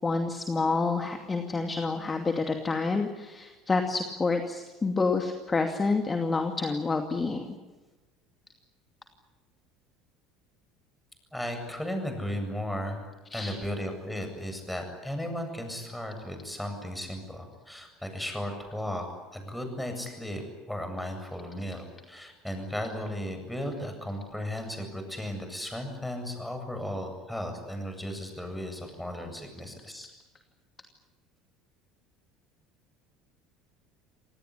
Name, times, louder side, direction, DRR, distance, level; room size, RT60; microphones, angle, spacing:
voice 1, 0.0-7.5 13.3-13.6, left 3 dB, 25° left, 5 dB, 2.5 m, -28 dB
voice 2, 11.3-13.0 13.3-19.1 19.3-20.4 20.7-30.1, equal, 5° left, 5 dB, 8.0 m, -35 dB
27.5 x 19.0 x 10.0 m, 1.2 s
hypercardioid pair, 70°, 0 cm